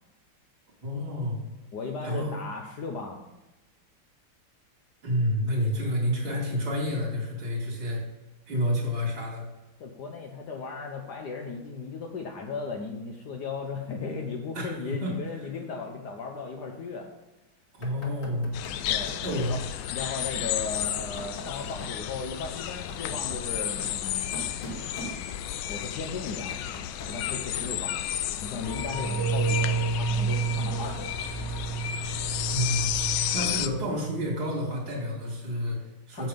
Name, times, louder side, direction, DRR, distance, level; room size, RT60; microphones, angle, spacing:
voice 1, 0.8-1.4 2.0-2.3 5.0-8.0 8.5-9.5 14.6-15.1 17.7-18.5 19.2-19.5 32.5-32.8 33.3-36.3, equal, 75° right, -3 dB, 3.7 m, -29 dB
voice 2, 1.7-3.2 9.8-17.1 18.9-19.1 19.5-24.4 25.7-26.6 27.1-28.1 28.4-31.2 36.1-36.3, left 4 dB, 65° left, 2 dB, 1.3 m, -36 dB
Knock, 17.8-19.5 20.7-22.0 22.7-25.6 26.1-27.9, equal, 40° left, 1.9 m, -43 dB
sound 1, 18.5-33.7, left 11 dB, 85° left, 1.4 m, -32 dB
sound 2, 28.6-34.6 34.9-35.1, right 5 dB, 15° right, 0.6 m, -30 dB
7.8 x 7.6 x 5.2 m, 1.0 s
omnidirectional pair, 2.2 m